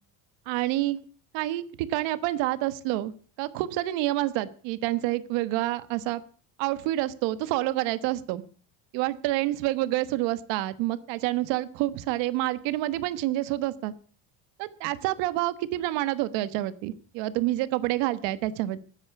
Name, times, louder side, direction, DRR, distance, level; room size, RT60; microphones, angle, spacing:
voice 1, 0.5-1.0 1.3-3.1 3.4-6.2 6.6-8.4 8.9-13.9 14.6-18.8, right 16 dB, 75° right, 13 dB, 1.4 m, -28 dB
13.0 x 9.6 x 8.1 m, 0.42 s
cardioid pair, 160°, 44 cm